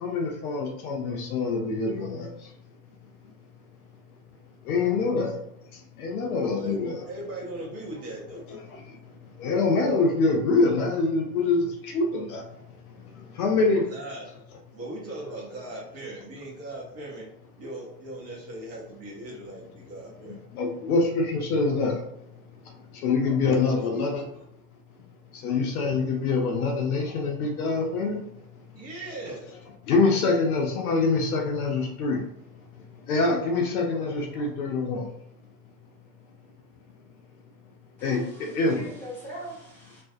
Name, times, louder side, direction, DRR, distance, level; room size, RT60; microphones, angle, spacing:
voice 1, 0.0-2.3 4.7-5.4 6.0-7.0 8.5-8.6 9.4-11.6 11.9-12.4 13.4-13.8 20.5-22.0 23.0-24.2 25.4-28.2 29.9-32.2 33.1-35.0 38.0-38.2 38.5-38.9, left 3 dB, 60° left, 0.6 m, -25 dB
voice 2, 7.0-8.5 13.9-14.3 14.7-17.3 17.6-20.4 23.6-24.3 28.7-29.5, right 2 dB, 30° right, 0.7 m, -39 dB
voice 3, 38.0-40.0, right 1 dB, 5° left, 1.1 m, -41 dB
2.4 x 2.1 x 2.4 m
figure-of-eight pair, 80°, 50 cm